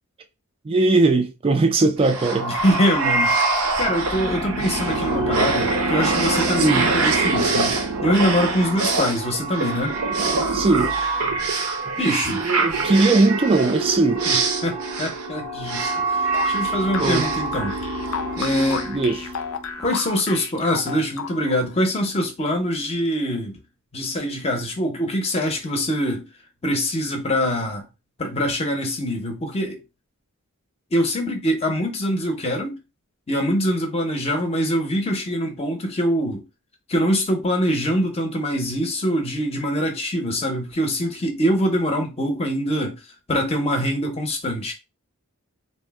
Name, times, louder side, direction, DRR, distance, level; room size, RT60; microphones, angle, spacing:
voice 1, 0.6-2.5 6.6-6.9 10.5-10.9 12.0-14.2 17.0-17.3 18.9-19.3, right 3 dB, 25° right, 0.3 m, -20 dB
sound 1, 2.0-19.7, right 3 dB, 75° right, 0.6 m, -24 dB
voice 2, 2.4-3.3 3.8-7.8 8.0-10.0 12.0-12.4 14.3-17.8 18.4-18.9 19.8-23.6 23.9-26.3 26.6-27.8 28.2-29.8 30.9-32.8 33.3-36.4 36.9-43.0 43.3-44.7, equal, 25° left, 0.6 m, -24 dB
sound 2, 16.3-21.7, left 7 dB, 65° left, 0.4 m, -32 dB
2.6 x 2.0 x 3.4 m
head